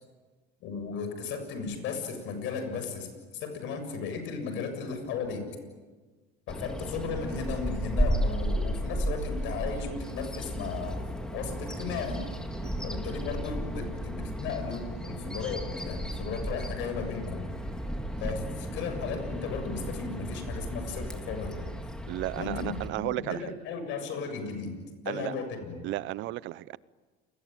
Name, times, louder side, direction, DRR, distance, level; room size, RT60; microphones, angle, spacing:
voice 1, 0.6-3.1 3.3-5.5 6.5-11.0 11.3-12.3 12.8-17.5 18.2-21.7 22.3-22.7 23.2-24.8 25.0-25.8, left 5 dB, 70° left, 7.3 m, -35 dB
Bird vocalization bird call bird song, 6.5-22.9, equal, 5° left, 3.6 m, -34 dB
voice 2, 22.1-23.5 25.1-25.3 25.8-26.8, right 17 dB, 70° right, 0.9 m, -34 dB
29.5 x 21.5 x 9.2 m
supercardioid pair, 105°, 20 cm